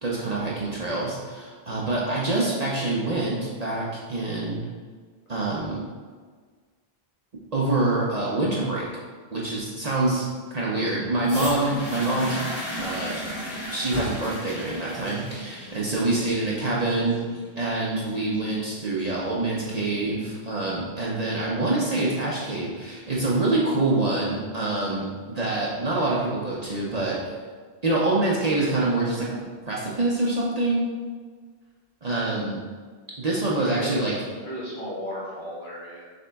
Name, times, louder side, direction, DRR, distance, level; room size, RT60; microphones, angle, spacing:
voice 1, 0.0-4.7 5.3-5.8 7.5-8.9 9.3-10.3 10.5-12.4 12.8-13.2 13.7-17.2 17.6-27.2 27.8-29.4 29.7-30.9 32.0-32.6 33.2-34.1, right 2 dB, 45° right, -5 dB, 0.7 m, -26 dB
sound 1, 11.2-19.2 20.0-20.1, equal, 30° left, 0.8 m, -35 dB
voice 2, 33.6-36.1, left 1 dB, 50° left, -6 dB, 1.4 m, -35 dB
6.6 x 3.6 x 2.2 m, 1.5 s
omnidirectional pair, 1.1 m